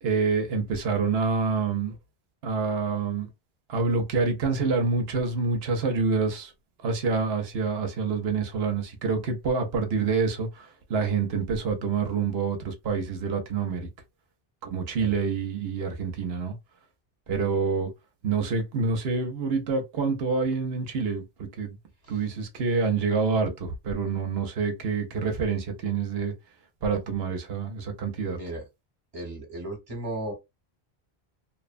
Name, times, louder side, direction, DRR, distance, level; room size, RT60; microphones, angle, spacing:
voice 1, 0.0-2.0 2.4-3.3 3.7-6.5 6.8-13.9 14.6-16.6 17.3-17.9 18.2-21.8 22.1-26.3 26.8-28.4, right 4 dB, 70° right, 0.9 m, -27 dB
voice 2, 28.2-28.6 29.1-30.3, right 1 dB, 35° right, 1.1 m, -35 dB
2.8 x 2.1 x 2.4 m
omnidirectional pair, 1.1 m